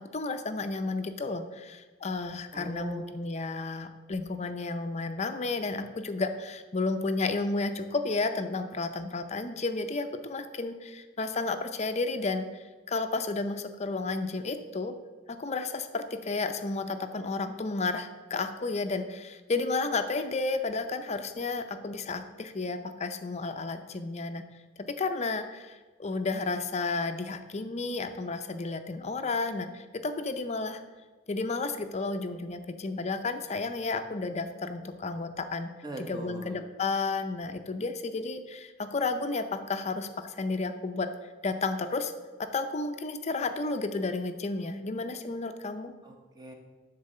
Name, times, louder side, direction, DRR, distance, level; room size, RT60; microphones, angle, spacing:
voice 1, 0.1-14.9 15.4-24.4 24.9-30.8 31.3-35.7 36.0-41.1 41.4-42.1 42.4-45.9, left 3 dB, 35° left, 8 dB, 0.6 m, -32 dB
voice 2, 2.5-3.0 35.8-36.6 46.0-46.5, right 1 dB, 20° right, 3 dB, 1.1 m, -40 dB
10.5 x 4.1 x 6.6 m, 1.3 s
head